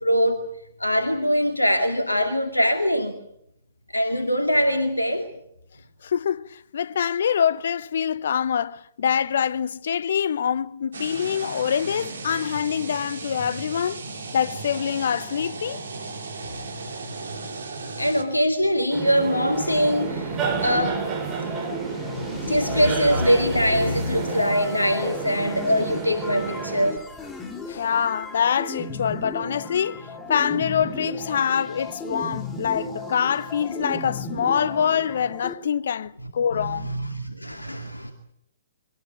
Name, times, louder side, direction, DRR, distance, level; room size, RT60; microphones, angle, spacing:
voice 1, 0.0-0.4 0.8-3.1 3.9-5.3 18.0-21.1 21.5-27.0 36.5-36.8 37.1-38.1, equal, 85° left, 2.3 m, -23 dB
voice 2, 6.0-14.0 14.3-15.8 18.0-18.1 27.7-36.9, left 8 dB, 55° left, 0.9 m, -25 dB
sound 1, 10.9-18.2, right 3 dB, 65° right, 3.9 m, -36 dB
sound 2, 18.9-26.9, right 6 dB, 20° right, 7.9 m, -30 dB
sound 3, 19.5-35.5, left 2 dB, 15° left, 3.1 m, -36 dB
23.5 x 18.5 x 9.2 m
figure-of-eight pair, 120°, 0 cm